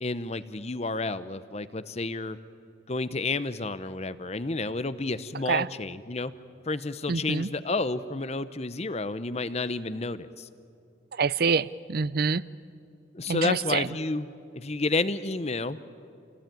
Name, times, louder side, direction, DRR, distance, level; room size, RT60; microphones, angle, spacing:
voice 1, 0.0-2.4 2.9-6.3 6.7-10.5 13.1-14.3 14.5-15.8, left 3 dB, 35° left, 14 dB, 0.8 m, -30 dB
voice 2, 7.1-7.5 11.1-12.4 13.3-13.9, right 5 dB, 50° right, 19 dB, 0.5 m, -26 dB
28.5 x 18.5 x 9.2 m, 2.5 s
head